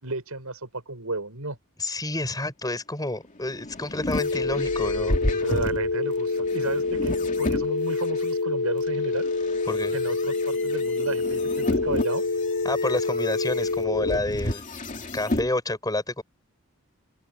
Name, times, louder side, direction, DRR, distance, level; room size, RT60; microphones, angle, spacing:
voice 1, 0.0-1.6 5.4-9.3 9.9-12.3, right 2 dB, 90° right, 6.2 m, -33 dB
voice 2, 1.8-5.4 9.7-9.9 12.6-14.6 15.1-16.2, left 2 dB, 20° left, 7.2 m, -29 dB
sound 1, 3.2-8.3 8.9-15.5, left 1 dB, 35° left, 2.7 m, -32 dB
sound 2, 4.2-14.2, left 3 dB, 90° left, 3.7 m, -27 dB
open air
head